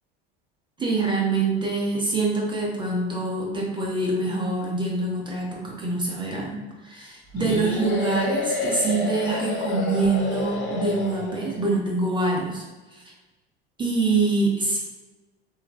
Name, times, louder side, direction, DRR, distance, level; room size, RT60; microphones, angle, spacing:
voice 1, 0.8-12.6 12.9-13.0 13.8-14.8, right 3 dB, 15° right, -2 dB, 0.5 m, -25 dB
sound 1, 7.3-11.5, left 2 dB, 40° left, 0.8 m, -29 dB
3.2 x 2.2 x 2.3 m, 1.2 s
hypercardioid pair, 80°, 32 cm